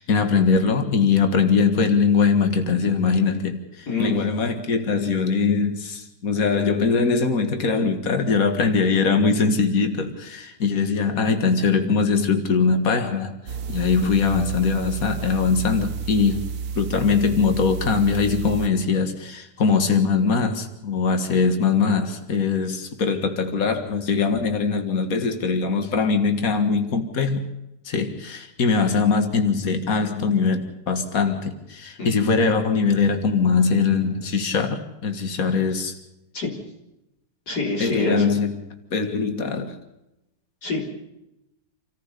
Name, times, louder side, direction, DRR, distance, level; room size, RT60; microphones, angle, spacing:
voice 1, 0.0-13.3 13.7-16.5 16.8-27.4 27.9-36.0 37.8-38.5 38.9-39.7, left 5 dB, 60° left, 7 dB, 2.2 m, -21 dB
voice 2, 3.9-4.2 32.0-32.1 36.3-36.5 37.5-38.3 40.6-40.8, left 3 dB, 80° left, -1 dB, 4.5 m, -26 dB
sound 1, 13.5-18.7, right 6 dB, 65° right, 1.3 m, -31 dB
28.0 x 14.0 x 6.8 m, 0.92 s
omnidirectional pair, 1.7 m